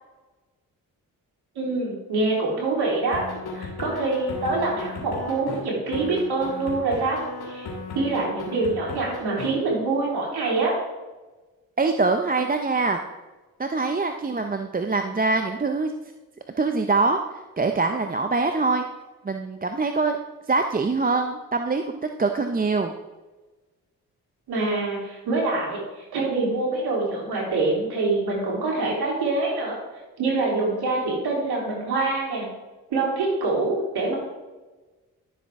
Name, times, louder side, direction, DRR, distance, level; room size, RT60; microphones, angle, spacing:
voice 1, 1.6-3.2 3.5-7.2 7.5-7.7 7.9-10.7 24.5-25.8 26.1-29.8 30.2-32.5 32.9-34.1, right 3 dB, 80° right, -4 dB, 3.6 m, -25 dB
sound 1, 3.1-5.6 5.9-9.5, left 3 dB, 80° left, 2.3 m, -35 dB
voice 2, 11.8-13.0 13.6-15.9 16.6-18.8 19.2-20.2 20.5-22.9, right 3 dB, 25° right, 6 dB, 0.7 m, -24 dB
11.5 x 7.0 x 3.7 m, 1.2 s
supercardioid pair, 50°, 38 cm